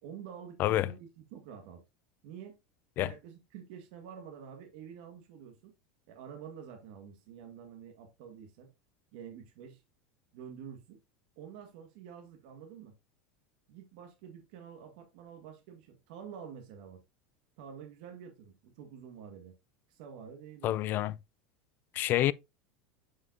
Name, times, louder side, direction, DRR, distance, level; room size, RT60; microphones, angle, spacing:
voice 1, 0.0-1.8 2.2-2.6 3.0-5.7 6.1-8.7 9.1-9.8 10.3-11.0 11.4-13.0 13.7-17.0 17.6-19.5 19.9-20.8, right 7 dB, 70° right, 1.6 m, -48 dB
voice 2, 20.6-21.1 21.9-22.3, left 14 dB, 45° left, 0.4 m, -27 dB
7.2 x 6.6 x 2.6 m
supercardioid pair, 125°, 5 cm